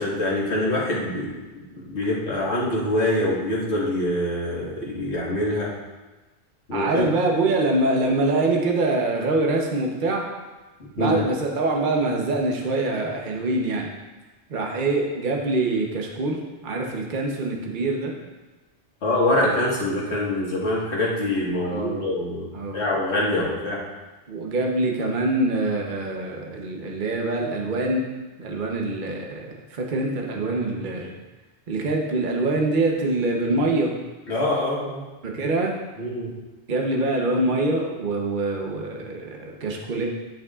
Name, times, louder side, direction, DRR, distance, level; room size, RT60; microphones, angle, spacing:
voice 1, 0.0-5.7 6.7-7.1 11.0-11.2 19.0-22.5 22.7-23.8 34.3-35.0 36.0-36.3, left 1 dB, 75° left, -5 dB, 2.0 m, -24 dB
voice 2, 6.7-10.2 11.0-13.9 14.5-18.1 19.4-19.5 21.6-22.1 22.5-22.8 24.3-28.0 28.4-31.1 31.7-33.9 35.2-35.8 36.7-40.1, right 2 dB, 50° right, 0 dB, 1.0 m, -24 dB
10.5 x 6.4 x 2.4 m, 1.2 s
omnidirectional pair, 1.1 m